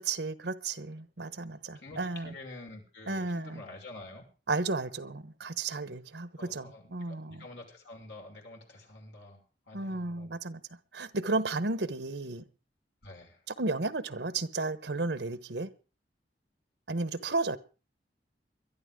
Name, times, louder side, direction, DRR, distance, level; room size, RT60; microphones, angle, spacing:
voice 1, 0.0-2.3 3.1-3.6 4.5-7.4 9.7-10.6 10.9-12.4 13.5-15.7 16.9-17.6, right 3 dB, 70° right, 1.2 m, -33 dB
voice 2, 1.8-4.2 6.4-9.4 9.7-10.4 13.0-13.4, left 2 dB, 75° left, 6.0 m, -48 dB
22.5 x 12.0 x 3.7 m
head